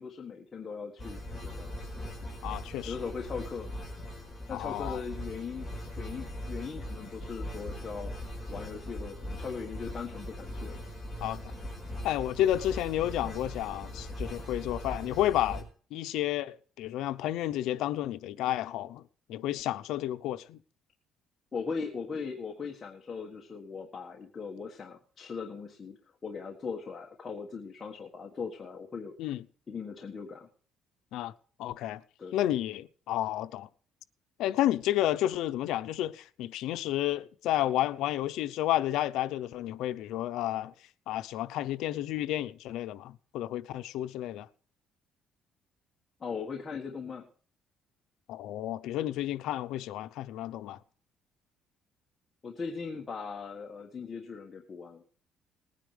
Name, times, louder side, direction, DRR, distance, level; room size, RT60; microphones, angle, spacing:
voice 1, 0.0-1.7 2.8-3.7 4.5-10.8 21.5-29.1 29.7-30.5 32.2-32.4 46.2-47.3 52.4-55.0, left 5 dB, 25° left, 1.5 m, -39 dB
sound 1, 1.0-15.6, left 1 dB, 5° left, 4.4 m, -40 dB
voice 2, 2.4-2.9 4.5-5.0 11.2-11.4 12.0-19.0 19.3-20.6 29.2-29.4 31.1-31.3 31.6-32.0 32.3-33.7 34.4-40.7 41.1-44.5 48.3-50.8, left 13 dB, 80° left, 0.7 m, -31 dB
20.0 x 9.9 x 3.4 m
cardioid pair, 160°, 0 cm